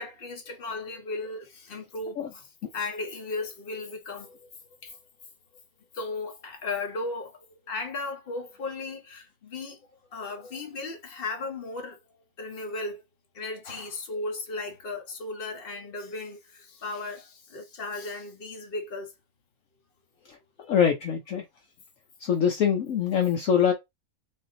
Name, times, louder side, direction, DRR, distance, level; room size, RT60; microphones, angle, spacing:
voice 1, 0.0-4.5 4.8-5.0 5.9-9.8 10.1-12.0 12.4-13.0 13.3-19.1, left 3 dB, 40° left, 1.2 m, -36 dB
voice 2, 20.7-21.4 22.2-23.7, left 8 dB, 65° left, 1.1 m, -23 dB
3.7 x 2.7 x 3.8 m
omnidirectional pair, 1.6 m